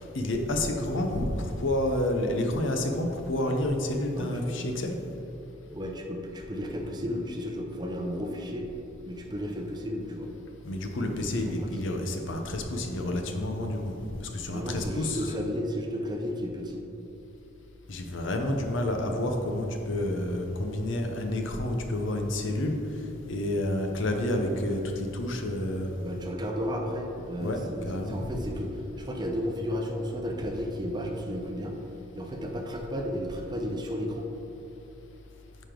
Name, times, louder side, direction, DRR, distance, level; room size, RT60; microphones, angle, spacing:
voice 1, 0.1-5.0 10.6-13.9 14.3-15.3 17.9-22.8 23.3-25.9 27.4-28.3, left 1 dB, 60° left, 4 dB, 0.8 m, -29 dB
voice 2, 4.1-4.6 5.7-8.7 9.1-10.3 11.2-11.7 14.5-16.8 26.0-31.8 32.1-34.3, equal, 20° right, 2 dB, 0.6 m, -33 dB
9.4 x 5.0 x 3.8 m, 3.0 s
head